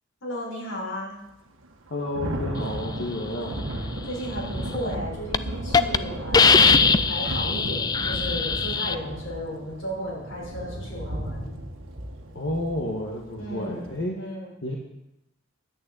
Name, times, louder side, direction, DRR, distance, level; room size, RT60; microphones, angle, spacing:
voice 1, 0.2-1.1 4.0-11.5 13.4-13.8 14.1-14.5, equal, 85° left, -4 dB, 5.5 m, -34 dB
Thunder / Rain, 1.6-14.0, right 1 dB, 80° right, 1.4 m, -34 dB
voice 2, 1.9-3.6 12.3-14.2 14.6-14.8, left 1 dB, 60° left, -1 dB, 1.4 m, -31 dB
Hiss, 4.7-5.0 5.3-5.4 5.7-6.0 6.3-8.9, left 5 dB, 20° left, 0.3 m, -20 dB
11.0 x 6.4 x 8.5 m, 0.86 s
head